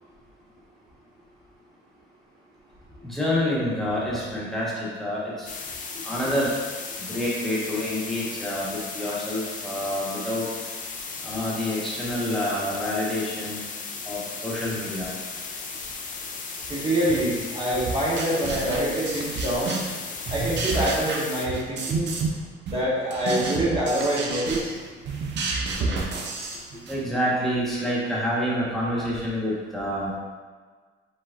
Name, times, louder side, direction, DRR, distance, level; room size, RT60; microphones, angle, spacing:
voice 1, 3.0-5.5 6.0-6.5 7.0-10.5 11.2-13.6 14.0-15.1 18.4-18.5 26.9-30.1, left 1 dB, ahead, -7 dB, 1.4 m, -27 dB
sound 1, 5.5-21.5, left 4 dB, 40° left, 0.5 m, -36 dB
voice 2, 16.7-19.8 20.3-22.1 22.7-24.7, right 1 dB, 25° right, -7 dB, 1.3 m, -25 dB
sound 2, 17.9-20.0 20.2-22.4 22.7-27.0, right 3 dB, 55° right, 0.7 m, -30 dB
4.9 x 4.0 x 2.6 m, 1.5 s
cardioid pair, 115°, 21 cm